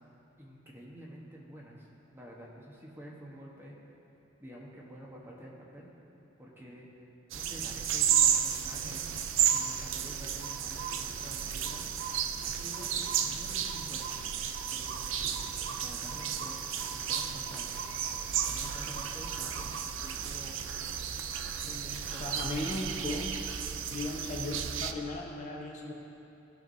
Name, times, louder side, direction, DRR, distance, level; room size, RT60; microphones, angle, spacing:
voice 1, 0.4-1.9 2.1-3.7 4.4-5.9 6.4-7.1 7.3-12.1 12.4-13.0 13.2-14.1 14.7-16.6 16.9-17.9 18.5-20.6 21.6-22.6 24.5-24.6, equal, 10° right, -4 dB, 1.2 m, -49 dB
sound 1, 7.3-24.9, right 8 dB, 75° right, 0.5 m, -33 dB
voice 2, 22.2-23.3 23.9-25.9, left 1 dB, 40° left, -2 dB, 1.1 m, -36 dB
17.5 x 6.0 x 2.7 m, 2.8 s
head